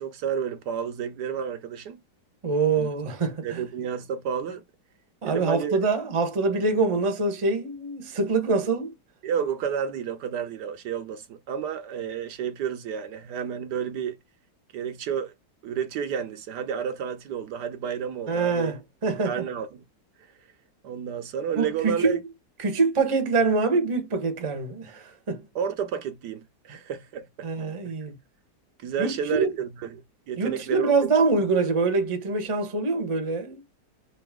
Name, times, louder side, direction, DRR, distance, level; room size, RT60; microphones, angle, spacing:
voice 1, 0.0-2.0 2.8-2.9 3.4-4.6 5.2-5.8 9.2-14.1 14.7-15.3 15.6-18.7 19.3-19.8 20.8-22.2 25.5-27.5 28.8-30.9, right 7 dB, 70° right, 1.2 m, -31 dB
voice 2, 2.4-3.6 5.2-8.9 18.3-19.4 21.6-22.2 22.6-25.4 26.7-26.8 27.4-28.2 29.0-29.5 30.4-33.6, right 4 dB, 25° right, 0.7 m, -25 dB
4.0 x 2.6 x 3.5 m
omnidirectional pair, 1.9 m